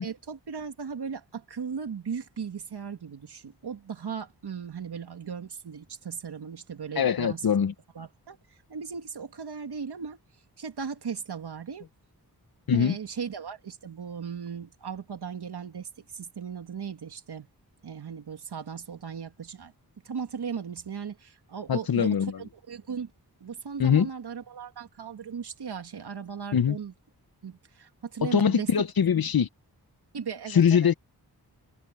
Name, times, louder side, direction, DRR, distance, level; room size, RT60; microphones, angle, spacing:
voice 1, 0.0-7.5 7.9-8.4 8.7-10.2 10.6-11.9 12.7-17.5 17.8-19.7 20.0-23.1 23.4-26.9 27.4-28.7 29.2-29.3 30.1-30.9, right 6 dB, 85° right, 2.3 m, -37 dB
voice 2, 7.0-7.7 12.7-12.9 21.7-22.3 23.8-24.1 26.5-26.8 28.2-29.5 30.5-30.9, left 7 dB, 65° left, 1.0 m, -22 dB
wide cardioid pair, 85°, 38 cm